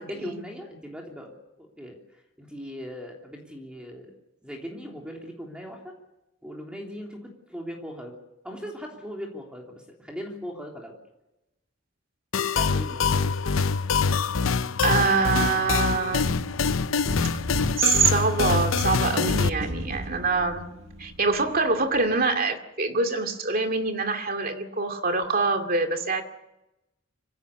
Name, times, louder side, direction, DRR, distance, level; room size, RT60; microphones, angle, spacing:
voice 1, 0.0-2.0 2.4-4.1 4.4-6.0 6.4-8.1 8.4-10.9 12.5-13.4, equal, 5° right, 0 dB, 3.2 m, -39 dB
sound 1, 12.3-19.5, left 5 dB, 85° left, 0.7 m, -24 dB
voice 2, 14.8-16.5 17.8-20.7 21.0-26.2, right 4 dB, 45° right, 5 dB, 2.4 m, -25 dB
Accelerating revving vroom, 14.9-22.3, equal, 85° right, 7.2 m, -37 dB
25.5 x 16.5 x 8.5 m, 0.94 s
head